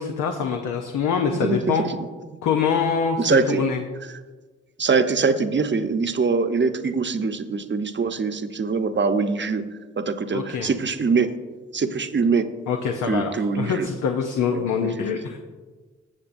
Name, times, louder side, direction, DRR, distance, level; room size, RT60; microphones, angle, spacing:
voice 1, 0.0-1.8 2.4-3.8 10.3-10.7 12.7-15.4, left 6 dB, 80° left, 4 dB, 0.7 m, -24 dB
voice 2, 1.3-1.9 2.3-2.4 3.2-3.6 4.1-4.2 4.8-9.7 10.0-11.3 11.7-12.5 13.1-13.9 14.5-14.9, right 4 dB, 40° right, 8 dB, 0.8 m, -23 dB
14.5 x 7.3 x 2.6 m, 1.3 s
supercardioid pair, 45°, 30 cm